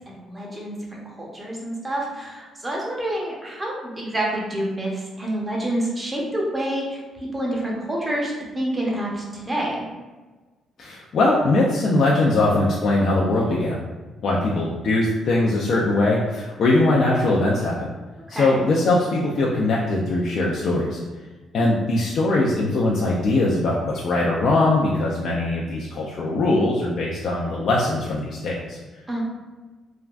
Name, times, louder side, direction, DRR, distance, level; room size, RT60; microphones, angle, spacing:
voice 1, 0.1-9.8 18.3-18.6 21.5-21.8 29.1-29.2, right 1 dB, 20° right, -3 dB, 0.8 m, -28 dB
voice 2, 10.8-13.8 14.2-17.8 18.3-21.0 21.5-28.8, left 2 dB, 65° left, -4 dB, 0.4 m, -21 dB
3.4 x 2.2 x 2.4 m, 1.3 s
cardioid pair, 90°, 0 cm